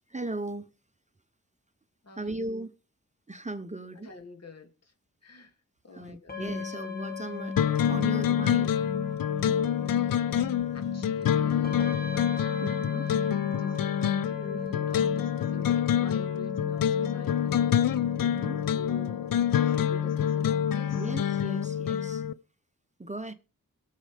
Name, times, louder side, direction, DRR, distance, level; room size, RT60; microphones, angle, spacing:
voice 1, 0.1-0.7 2.1-2.7 3.3-4.1 5.9-7.6 7.9-8.9 9.2-9.4 10.4-10.5 12.6-13.0 18.2-18.6 20.9-22.2 23.0-23.3, right 2 dB, 20° right, 0.9 m, -37 dB
voice 2, 2.0-2.4 4.0-4.9 5.2-5.5 5.8-6.4 10.7-13.8 14.2-17.6 18.7-19.3 19.6-21.0, left 2 dB, 50° left, 2.6 m, -48 dB
sound 1, 6.3-22.1, left 5 dB, 30° left, 2.0 m, -39 dB
sound 2, 7.6-22.3, left 9 dB, 85° left, 0.6 m, -27 dB
22.0 x 7.4 x 3.4 m
wide cardioid pair, 80°, 33 cm